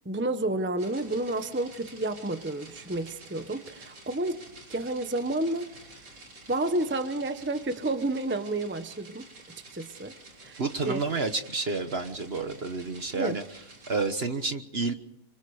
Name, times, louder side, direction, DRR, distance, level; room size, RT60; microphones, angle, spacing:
voice 1, 0.0-4.4 4.7-5.8 6.5-9.3 9.7-10.1 10.4-11.0 13.1-13.4, right 2 dB, 10° right, 9 dB, 0.9 m, -30 dB
sound 1, 0.8-14.1, right 2 dB, 90° right, 4.3 m, -50 dB
voice 2, 10.6-13.4 13.9-14.9, right 3 dB, 40° right, 8 dB, 1.3 m, -30 dB
26.0 x 24.0 x 5.0 m, 0.79 s
omnidirectional pair, 1.7 m